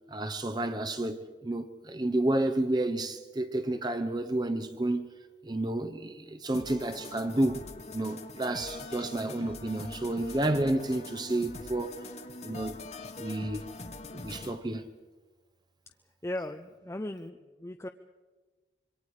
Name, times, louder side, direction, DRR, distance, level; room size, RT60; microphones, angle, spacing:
voice 1, 0.1-5.2 5.4-7.6 7.9-11.9 12.4-12.8 13.2-13.6 14.1-14.9, right 1 dB, 25° right, 0.9 m, -30 dB
sound 1, 6.5-14.5, left 2 dB, 40° left, 1.4 m, -43 dB
voice 2, 16.2-17.9, left 1 dB, 15° left, 0.5 m, -37 dB
26.5 x 23.0 x 4.9 m
head